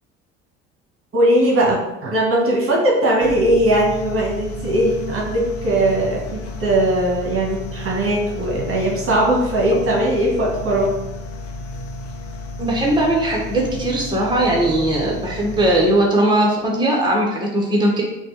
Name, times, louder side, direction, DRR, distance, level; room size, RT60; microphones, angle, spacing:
voice 1, 1.1-10.9, right 1 dB, 45° right, -2 dB, 1.3 m, -19 dB
sound 1, 3.2-16.2, left 1 dB, 55° left, 0.8 m, -33 dB
voice 2, 12.6-18.0, right 1 dB, 15° right, -2 dB, 1.2 m, -19 dB
5.8 x 2.4 x 3.2 m, 0.96 s
hypercardioid pair, 60°, 31 cm